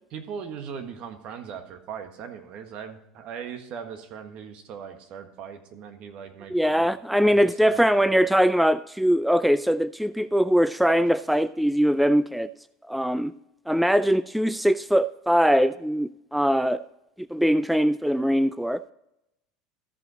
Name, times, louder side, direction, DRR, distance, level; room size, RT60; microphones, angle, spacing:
voice 1, 0.1-8.2, right 7 dB, 55° right, 1.5 m, -39 dB
voice 2, 6.5-12.5 12.9-13.3 13.7-16.8 17.3-18.8, equal, ahead, 0.3 m, -22 dB
14.5 x 5.5 x 4.0 m
hypercardioid pair, 90°, 2 cm